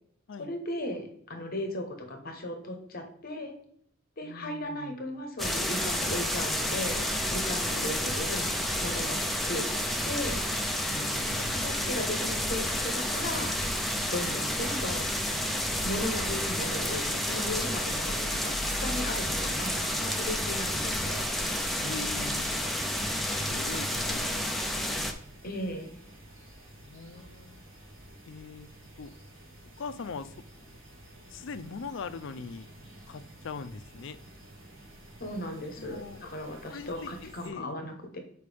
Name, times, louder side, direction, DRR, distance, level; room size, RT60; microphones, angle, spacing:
voice 1, 0.4-3.5 4.2-8.5 8.8-9.8 10.0-10.4 11.5-13.6 14.1-15.1 15.8-21.3 25.4-26.0 35.2-38.2, left 1 dB, 50° left, 4 dB, 1.0 m, -36 dB
voice 2, 4.2-5.0 7.7-8.0 10.9-11.7 14.1-14.4 21.8-22.5 23.2-24.5 26.8-27.6 28.3-28.7 29.0-29.1 29.8-30.3 31.3-32.7 33.1-34.2 35.8-36.3 36.7-37.7, left 4 dB, 70° left, 12 dB, 0.5 m, -41 dB
sound 1, 5.4-25.1, left 1 dB, ahead, 0.6 m, -30 dB
sound 2, 19.4-37.5, right 1 dB, 75° right, 1.8 m, -51 dB
6.8 x 4.6 x 3.4 m, 0.68 s
head